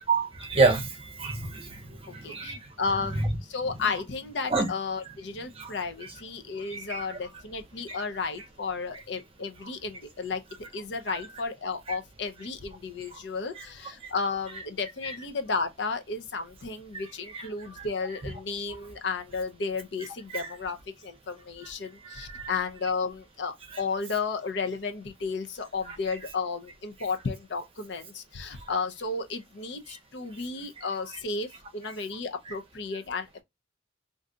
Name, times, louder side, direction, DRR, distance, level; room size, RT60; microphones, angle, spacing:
voice 1, 0.1-2.6 4.5-4.7 5.6-5.7 6.7-7.0 7.9-8.0 17.3-17.5 17.8-17.9 20.3-20.5 22.0-22.5, right 3 dB, 30° right, 0.8 m, -28 dB
voice 2, 2.1-10.4 10.7-33.4, left 4 dB, 60° left, 0.6 m, -33 dB
2.6 x 2.3 x 3.7 m
head